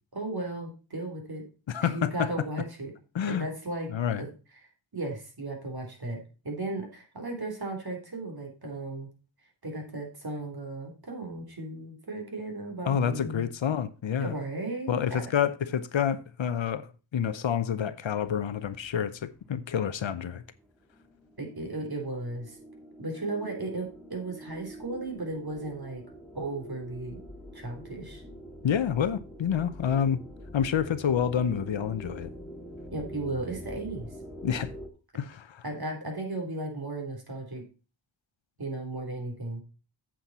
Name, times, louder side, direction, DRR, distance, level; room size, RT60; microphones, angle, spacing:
voice 1, 0.1-1.4 1.8-2.9 3.3-3.9 4.2-4.3 4.9-9.1 9.6-13.5 14.2-15.2 21.4-22.6 23.0-26.0 26.3-27.2 27.5-28.2 32.9-34.1 35.6-37.6 38.6-39.6, right 2 dB, 50° right, 3.5 m, -35 dB
voice 2, 1.7-2.3 3.1-3.5 3.9-4.2 12.9-14.3 14.9-20.4 28.6-30.2 30.5-32.3 34.4-34.7 35.1-35.6, left 8 dB, 70° left, 0.8 m, -28 dB
sound 1, 18.2-34.9, equal, ahead, 1.9 m, -45 dB
8.4 x 7.4 x 4.2 m
cardioid pair, 60°, 48 cm